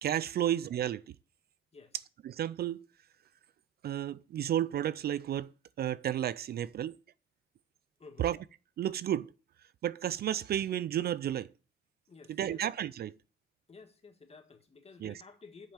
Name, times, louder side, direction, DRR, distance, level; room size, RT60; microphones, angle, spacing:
voice 1, 0.0-1.0 2.2-2.8 3.8-5.5 5.8-7.0 8.2-8.4 8.8-9.3 9.8-11.5 12.4-13.1 15.0-15.1, right 11 dB, 55° right, 0.4 m, -32 dB
voice 2, 12.1-12.6 13.7-15.7, left 4 dB, 30° left, 1.8 m, -53 dB
7.4 x 5.4 x 7.2 m
cardioid pair, 90°, 20 cm